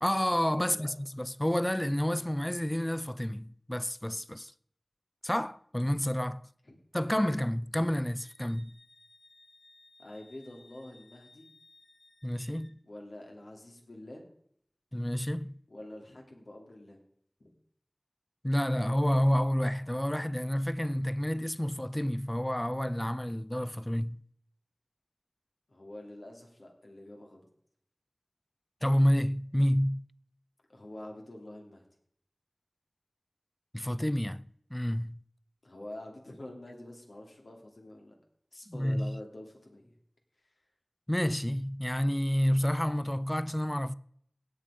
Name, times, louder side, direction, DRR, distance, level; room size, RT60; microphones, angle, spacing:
voice 1, 0.0-4.5 5.2-6.5 6.9-8.8 12.2-12.8 14.9-15.5 18.4-24.2 28.8-30.0 33.7-34.4 34.7-35.2 38.7-39.2 41.1-43.9, equal, 15° left, 0.5 m, -29 dB
voice 2, 0.5-0.9 6.6-6.8 10.0-11.5 12.8-14.2 15.7-17.0 17.4-17.5 25.7-27.5 30.7-31.9 35.6-38.2 38.5-39.9, left 1 dB, 85° left, 2.7 m, -46 dB
Wind instrument woodwind instrument, 8.2-12.7, left 2 dB, 60° left, 1.2 m, -60 dB
17.0 x 8.4 x 5.0 m
wide cardioid pair, 45°, 0 cm